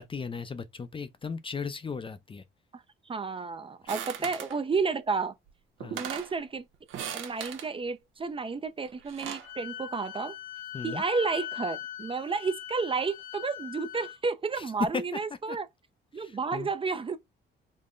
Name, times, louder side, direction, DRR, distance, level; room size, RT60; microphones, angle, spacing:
voice 1, 0.0-2.4 3.8-3.9 5.8-6.0 10.7-11.0 14.6-14.7 14.9-15.2 15.5-15.6 16.1-16.7, left 5 dB, 25° left, 0.5 m, -37 dB
voice 2, 2.7-5.3 5.9-6.6 7.1-10.4 10.8-15.7 16.1-17.2, right 4 dB, 25° right, 0.5 m, -31 dB
sound 1, 3.9-4.6 5.5-5.6 5.8-6.3 6.9-7.7 8.9-9.5, right 9 dB, 85° right, 0.9 m, -38 dB
Wind instrument woodwind instrument, 9.4-14.2, left 12 dB, 90° left, 0.6 m, -40 dB
3.8 x 2.1 x 3.7 m
cardioid pair, 90°, 20 cm